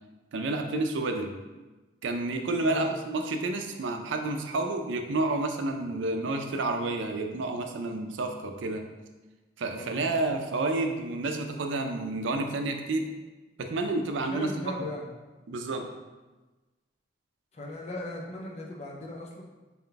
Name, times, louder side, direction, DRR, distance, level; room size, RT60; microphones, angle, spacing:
voice 1, 0.3-1.3 2.0-8.8 9.6-13.1 13.6-14.9 15.5-15.9, right 2 dB, 85° right, 5 dB, 0.4 m, -30 dB
voice 2, 9.7-10.2 14.3-15.1 17.5-19.4, left 1 dB, 35° left, 0 dB, 0.6 m, -38 dB
4.2 x 2.2 x 3.9 m, 1.2 s
head